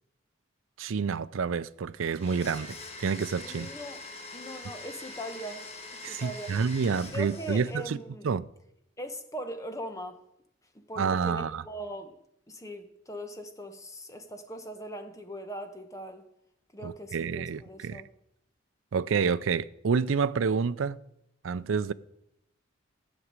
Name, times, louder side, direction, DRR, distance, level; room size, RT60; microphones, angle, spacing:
voice 1, 0.8-3.7 6.0-8.0 8.2-8.4 11.0-11.6 16.8-18.0 18.9-21.0 21.4-21.9, right 5 dB, 80° right, 0.4 m, -28 dB
Domestic sounds home sounds, 2.1-8.0, left 2 dB, 30° left, 1.6 m, -44 dB
voice 2, 3.4-4.0 4.3-5.7 6.1-6.5 6.9-8.3 9.0-10.2 10.7-12.2 12.5-16.3 16.7-18.1, equal, 15° left, 1.1 m, -40 dB
13.5 x 6.1 x 9.5 m
head